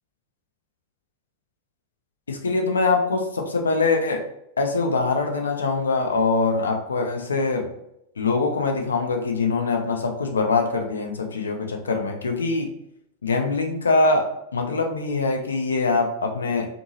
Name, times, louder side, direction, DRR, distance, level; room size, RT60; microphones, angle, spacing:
voice 1, 2.3-4.2 4.6-7.7 8.2-12.7 13.2-14.3 14.5-16.7, left 3 dB, 70° left, 3 dB, 0.5 m, -23 dB
2.6 x 2.6 x 2.7 m, 0.79 s
figure-of-eight pair, 90°, 0 cm